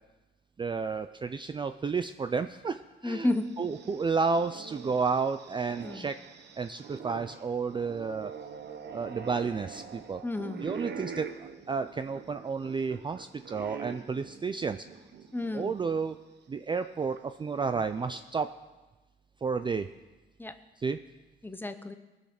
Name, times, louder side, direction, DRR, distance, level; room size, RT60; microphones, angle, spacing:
voice 1, 0.6-3.3 3.6-6.2 6.6-8.3 8.9-10.2 10.6-14.8 15.5-16.2 16.5-18.5 19.4-19.9 20.8-21.0, right 5 dB, 25° right, 9 dB, 0.4 m, -31 dB
voice 2, 3.0-3.5 5.8-6.1 10.2-10.7 15.3-15.7 20.4-20.5 21.4-21.9, left 2 dB, 10° left, 10 dB, 0.9 m, -32 dB
sound 1, 3.3-15.6 16.0-16.1 17.2-18.4, right 6 dB, 60° right, 1.0 m, -45 dB
19.0 x 6.5 x 5.9 m, 1.1 s
cardioid pair, 90°, 20 cm